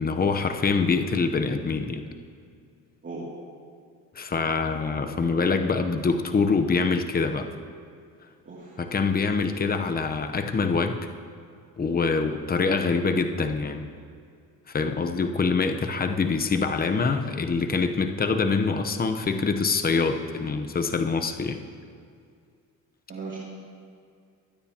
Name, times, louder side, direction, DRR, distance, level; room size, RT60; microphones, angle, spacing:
voice 1, 0.0-2.0 4.2-7.5 8.8-11.0 11.8-13.9 14.7-21.6, left 4 dB, 25° left, 7 dB, 0.9 m, -25 dB
voice 2, 8.4-8.8 23.1-23.4, right 4 dB, 30° right, -7 dB, 2.8 m, -37 dB
22.0 x 9.5 x 2.9 m, 2.3 s
supercardioid pair, 80°, 38 cm